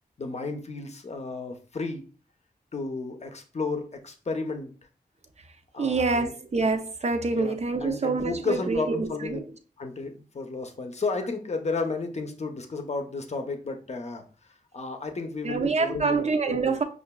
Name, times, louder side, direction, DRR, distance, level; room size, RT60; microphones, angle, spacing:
voice 1, 0.2-2.0 2.7-4.7 5.7-6.3 7.3-7.5 7.8-9.4 9.8-14.2 14.7-16.7, left 3 dB, 45° left, 0.7 m, -32 dB
voice 2, 5.8-9.5 15.4-16.8, right 4 dB, 45° right, 0.5 m, -26 dB
5.7 x 2.4 x 2.2 m
wide cardioid pair, 75°, 16 cm